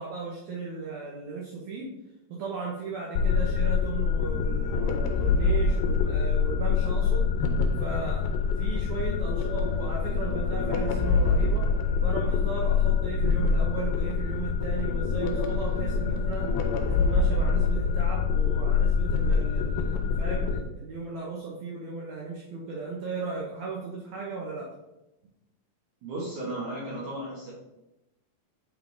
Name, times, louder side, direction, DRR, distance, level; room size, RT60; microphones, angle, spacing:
voice 1, 0.0-1.9 2.3-7.3 7.8-8.3 8.6-11.6 12.0-16.5 16.8-24.7, right 4 dB, 90° right, -3 dB, 1.6 m, -36 dB
sound 1, 3.2-20.6, left 5 dB, 80° left, 2.3 m, -25 dB
voice 2, 26.0-27.5, right 1 dB, 65° right, -5 dB, 2.2 m, -35 dB
8.0 x 3.7 x 3.8 m, 0.93 s
omnidirectional pair, 4.7 m